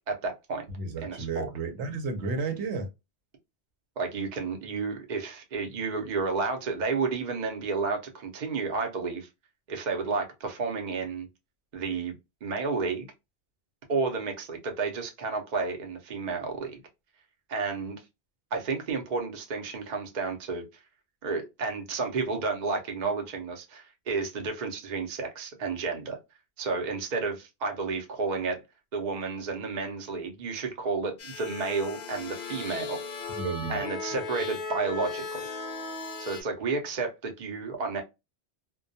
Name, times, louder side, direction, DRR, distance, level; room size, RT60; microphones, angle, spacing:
voice 1, 0.1-0.6 1.0-1.5 4.0-9.3 9.7-11.3 11.7-13.1 13.9-16.8 17.5-18.0 18.5-20.6 21.2-26.2 26.6-28.6 28.9-33.0 33.7-35.5 36.2-38.0, right 4 dB, 50° right, 0.7 m, -31 dB
voice 2, 0.8-2.9 33.3-33.8, right 4 dB, 90° right, 1.0 m, -32 dB
sound 1, 31.2-36.4, left 4 dB, 55° left, 0.5 m, -37 dB
2.2 x 2.2 x 2.6 m
omnidirectional pair, 1.1 m